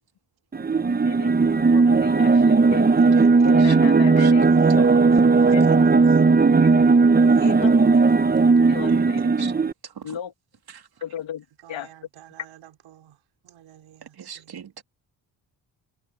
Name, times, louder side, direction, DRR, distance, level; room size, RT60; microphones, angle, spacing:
sound 1, 0.5-9.7, right 4 dB, 20° right, 0.8 m, -17 dB
voice 1, 1.0-2.9 3.4-4.9 5.5-5.6 7.4-7.7 8.6-9.5 10.0-10.3 11.0-11.9, left 9 dB, 80° left, 1.9 m, -35 dB
voice 2, 3.0-4.9 8.9-9.5 9.8-10.2 10.7-10.9 14.0-14.8, right 8 dB, 55° right, 2.6 m, -39 dB
voice 3, 5.4-6.2 7.2-7.9 11.6-13.2 13.4-14.6, right 12 dB, 85° right, 3.5 m, -45 dB
cardioid pair, 85°, 46 cm